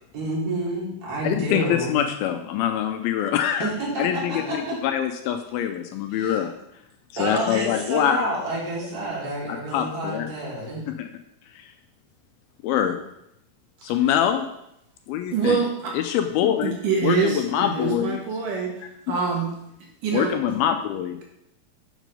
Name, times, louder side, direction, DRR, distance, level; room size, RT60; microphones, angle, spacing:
voice 1, 0.1-2.0 3.6-4.7 6.1-6.4 7.2-10.9, right 1 dB, 25° right, -6 dB, 2.9 m, -29 dB
voice 2, 1.2-3.7 4.0-4.6 4.8-6.5 7.1-8.3 9.5-10.3 10.9-11.1 11.5-11.7 12.6-13.0 13.8-14.5 15.1-15.6 15.9-16.7 17.0-18.2 20.1-21.2, left 10 dB, 80° left, 7 dB, 2.3 m, -24 dB
voice 3, 15.3-16.0 16.6-19.5 20.0-20.6, right 5 dB, 65° right, -1 dB, 2.6 m, -25 dB
7.6 x 6.1 x 5.4 m, 0.81 s
omnidirectional pair, 4.6 m